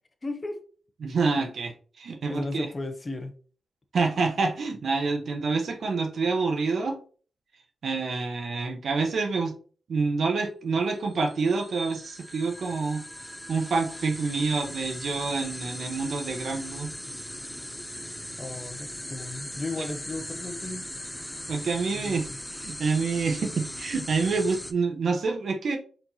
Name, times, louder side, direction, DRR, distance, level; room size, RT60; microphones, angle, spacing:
voice 1, 0.2-0.6 1.4-1.5 2.3-3.4 18.4-20.8 21.9-22.4, left 2 dB, 35° left, 0.8 m, -35 dB
voice 2, 1.0-1.7 2.0-2.7 3.9-7.0 7.8-9.6 9.9-13.0 13.5-16.9 19.8-19.9 21.5-22.3 22.6-25.8, right 4 dB, 70° right, 0.8 m, -27 dB
sound 1, 11.1-24.7, left 1 dB, 10° left, 0.5 m, -39 dB
4.5 x 3.8 x 2.8 m
cardioid pair, 50°, 0 cm